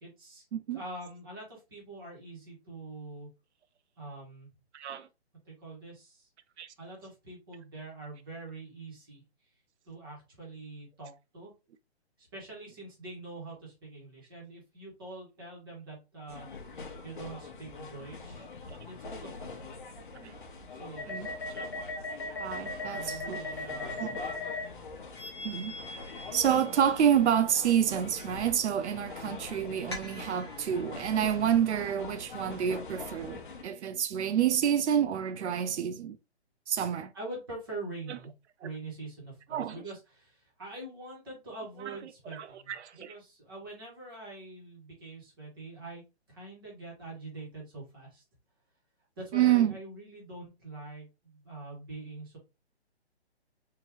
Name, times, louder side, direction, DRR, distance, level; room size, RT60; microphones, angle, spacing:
voice 1, 0.0-0.4 0.7-3.3 4.0-4.5 5.4-6.3 6.8-9.2 9.8-11.5 12.2-18.5 18.9-19.7 20.7-21.3 22.9-24.3 37.1-38.3 38.6-46.0 46.3-48.2 49.2-52.4, right 2 dB, 20° right, 1.3 m, -44 dB
voice 2, 4.7-5.1 6.6-6.7 18.7-18.8 20.2-20.3 21.1-21.3 21.5-21.7 22.4-23.4 24.0-24.2 25.4-25.7 26.3-36.2 36.7-37.1 38.6-38.7 39.5-39.8 42.4-43.1 49.3-49.7, right 9 dB, 90° right, 0.5 m, -28 dB
sound 1, 16.3-33.6, left 4 dB, 50° left, 0.8 m, -44 dB
sound 2, 21.0-24.7 25.1-27.3 29.9-30.9, left 2 dB, 25° left, 0.5 m, -39 dB
3.7 x 2.7 x 2.9 m
hypercardioid pair, 175°, 33 cm